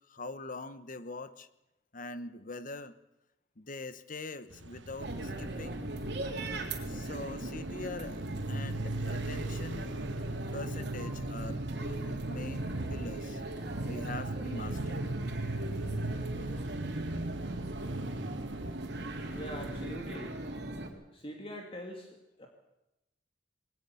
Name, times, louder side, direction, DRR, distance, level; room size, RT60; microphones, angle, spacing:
voice 1, 0.1-1.5 1.9-2.9 3.6-5.9 6.8-10.0 10.5-13.4 13.8-15.0, left 2 dB, 45° left, 12 dB, 1.1 m, -43 dB
sound 1, 4.5-19.9, right 2 dB, 85° right, 1.2 m, -39 dB
sound 2, 5.0-20.9, right 1 dB, 65° right, 3.6 m, -39 dB
voice 2, 19.3-20.4 21.1-22.5, equal, 30° left, 2 dB, 2.4 m, -43 dB
22.0 x 18.0 x 7.1 m, 0.91 s
head